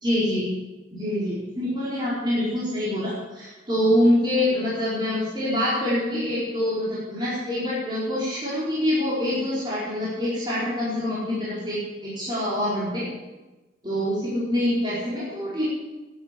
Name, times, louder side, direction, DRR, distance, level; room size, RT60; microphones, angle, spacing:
voice 1, 0.0-0.4 1.0-13.0 13.8-15.7, left 1 dB, 25° right, -10 dB, 4.6 m, -25 dB
11.5 x 11.0 x 8.4 m, 1.1 s
head